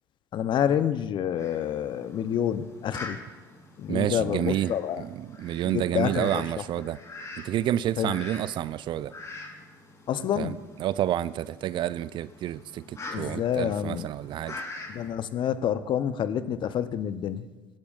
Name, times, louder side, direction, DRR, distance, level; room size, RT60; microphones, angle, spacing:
voice 1, 0.3-3.2 3.8-5.0 5.7-6.4 8.0-8.1 10.1-10.6 13.1-14.1 14.9-17.5, left 9 dB, 50° left, 13 dB, 0.7 m, -28 dB
Fowl, 1.4-15.1, left 2 dB, 30° left, 3.1 m, -44 dB
voice 2, 3.9-7.0 7.4-9.1 10.4-14.6, right 12 dB, 50° right, 18 dB, 0.4 m, -29 dB
19.5 x 12.0 x 2.5 m, 1.2 s
hypercardioid pair, 60°, 10 cm